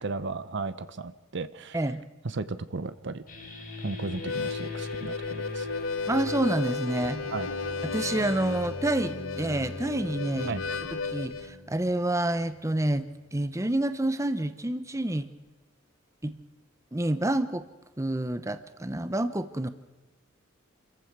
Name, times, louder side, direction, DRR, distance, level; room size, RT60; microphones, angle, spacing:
voice 1, 0.0-1.8 2.2-3.2 3.8-5.7 7.3-7.5 10.5-10.6, right 3 dB, 60° right, 14 dB, 0.8 m, -35 dB
sound 1, 3.3-12.6, left 2 dB, 45° left, 4.6 m, -41 dB
Harmonica, 4.1-11.5, left 4 dB, 80° left, 1.3 m, -34 dB
voice 2, 6.1-7.2 7.8-10.6 11.1-15.3 16.2-16.4 16.9-17.6 18.0-19.7, right 1 dB, 15° right, 12 dB, 0.9 m, -28 dB
28.5 x 15.0 x 6.1 m, 1.1 s
head